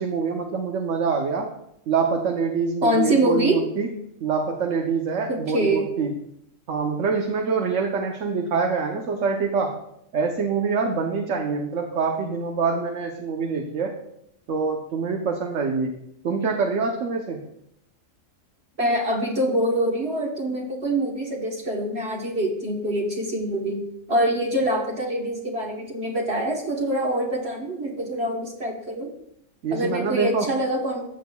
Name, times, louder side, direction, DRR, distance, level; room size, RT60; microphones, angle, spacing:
voice 1, 0.0-1.5 1.9-3.9 4.2-6.1 6.7-9.8 10.1-13.9 14.5-15.9 16.2-17.4 29.6-30.5, right 5 dB, 70° right, 2 dB, 1.2 m, -25 dB
voice 2, 2.8-3.6 5.3-5.9 18.8-23.8 24.1-29.1 29.7-31.0, right 1 dB, 55° right, -1 dB, 1.4 m, -25 dB
14.5 x 7.2 x 2.3 m, 0.76 s
omnidirectional pair, 1.4 m